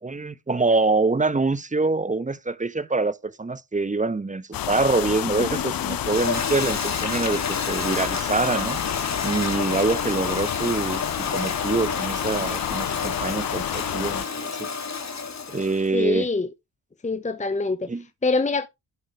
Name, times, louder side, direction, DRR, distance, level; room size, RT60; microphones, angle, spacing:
voice 1, 0.0-8.8 9.2-14.7 15.5-16.3 17.9-18.0, right 3 dB, 20° right, 1.0 m, -25 dB
sound 1, 4.5-14.3, left 12 dB, 60° left, 0.8 m, -30 dB
Toilet flush, 4.9-15.9, left 5 dB, 40° left, 2.2 m, -30 dB
voice 2, 15.9-16.5 17.0-17.9 18.2-18.7, left 3 dB, 20° left, 0.9 m, -24 dB
11.0 x 7.8 x 3.5 m
supercardioid pair, 55°, 40 cm